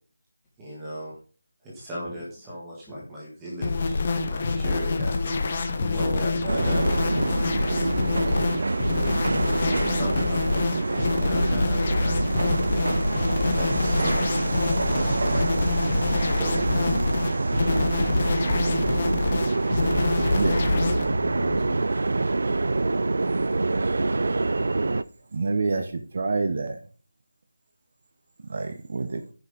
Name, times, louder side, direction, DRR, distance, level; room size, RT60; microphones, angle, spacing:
voice 1, 0.6-1.1 1.7-5.2 5.9-6.9 9.8-13.1 13.5-15.4 16.3-17.0, equal, 10° right, 1.8 m, -36 dB
sound 1, 3.6-21.1, left 3 dB, 30° left, 1.2 m, -26 dB
voice 2, 5.8-7.2 7.8-8.4 20.5-21.8, left 2 dB, 10° left, 3.1 m, -36 dB
sound 2, 6.5-25.0, right 3 dB, 60° right, 0.5 m, -26 dB
voice 3, 25.3-26.8 28.5-29.2, right 3 dB, 40° right, 0.9 m, -27 dB
10.5 x 6.4 x 5.1 m
figure-of-eight pair, 175°, 0 cm